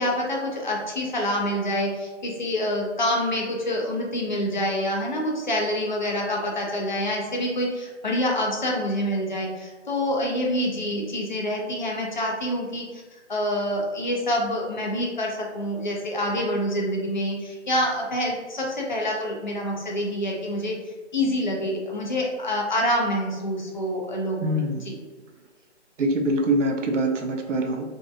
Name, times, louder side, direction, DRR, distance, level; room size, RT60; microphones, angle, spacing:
voice 1, 0.0-20.8 21.1-24.9, equal, 40° left, -1 dB, 0.4 m, -27 dB
voice 2, 24.4-25.0 26.0-27.8, right 1 dB, 90° right, 3 dB, 0.6 m, -24 dB
2.5 x 2.0 x 2.5 m, 1.3 s
hypercardioid pair, 165°, 36 cm